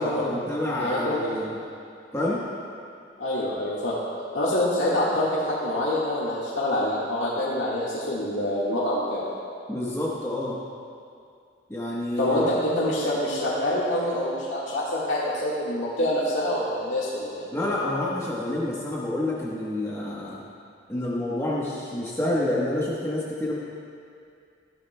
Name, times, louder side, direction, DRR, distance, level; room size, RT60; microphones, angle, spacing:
voice 1, 0.0-1.6 2.1-2.4 9.7-10.6 11.7-12.4 17.5-20.4 20.9-23.6, left 1 dB, 15° left, -6 dB, 1.0 m, -28 dB
voice 2, 0.8-1.2 3.2-4.0 4.3-9.2 12.2-17.4, left 1 dB, 80° left, -8 dB, 1.6 m, -26 dB
15.0 x 12.5 x 2.2 m, 2.4 s
head